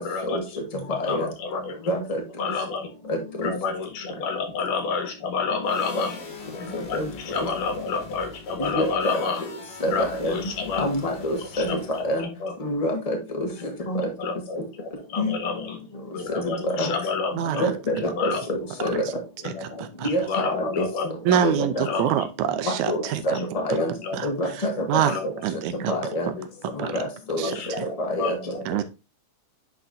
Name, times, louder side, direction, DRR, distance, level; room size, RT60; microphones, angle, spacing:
voice 1, 0.0-0.6 0.9-1.8 2.4-2.9 3.4-6.2 6.5-9.5 9.9-10.9 11.4-11.8 12.2-12.6 13.6-15.8 16.1-17.7 18.0-18.4 18.8-18.9 19.4-19.9 20.2-21.4 21.9-22.2 23.8-24.3 25.0-25.3 26.3-26.9 27.4-28.7, left 4 dB, 85° left, 5 dB, 3.2 m, -30 dB
voice 2, 1.9-2.2 3.1-3.5 5.9-6.0 6.7-7.1 8.6-9.2 9.8-10.4 10.8-12.3 12.6-14.0 15.2-15.3 16.4-16.9 17.6-18.6 18.8-19.0 20.0-20.9 21.4-21.8 22.6-23.9 24.2-25.3 25.9-26.3 26.7-28.3, left 1 dB, 25° left, 2 dB, 0.8 m, -27 dB
sound 1, 5.6-12.2, left 4 dB, 45° left, 1.8 m, -42 dB
voice 3, 17.3-17.7 18.9-19.1 19.4-20.1 21.3-23.4 23.7-23.8 24.1-25.9 26.8-27.0 27.4-27.8 28.7-28.8, right 10 dB, 80° right, 11 dB, 2.0 m, -26 dB
9.7 x 4.5 x 2.6 m, 0.29 s
omnidirectional pair, 3.6 m